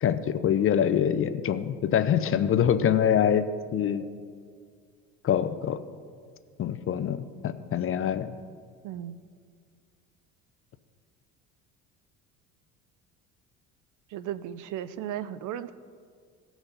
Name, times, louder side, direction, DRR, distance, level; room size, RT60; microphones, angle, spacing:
voice 1, 0.0-3.5 3.7-4.0 5.2-5.8 6.6-7.2 7.4-8.3, left 9 dB, 40° left, 12 dB, 0.6 m, -24 dB
voice 2, 8.8-9.2 14.1-15.7, right 11 dB, 60° right, 16 dB, 0.6 m, -36 dB
18.0 x 6.1 x 4.0 m, 2.1 s
supercardioid pair, 90°, 34 cm